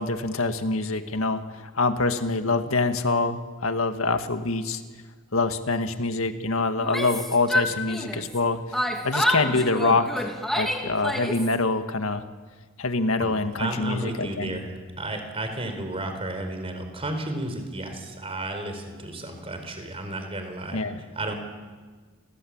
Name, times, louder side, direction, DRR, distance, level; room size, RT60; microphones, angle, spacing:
voice 1, 0.0-4.8 5.3-12.2 12.8-14.6 20.7-21.0, left 3 dB, 80° left, 8 dB, 1.8 m, -25 dB
Yell, 6.8-8.4 8.7-11.5, equal, ahead, 2.9 m, -28 dB
voice 2, 13.6-14.7 15.0-21.3, right 1 dB, 30° right, 6 dB, 4.4 m, -32 dB
29.5 x 19.5 x 8.8 m, 1.4 s
head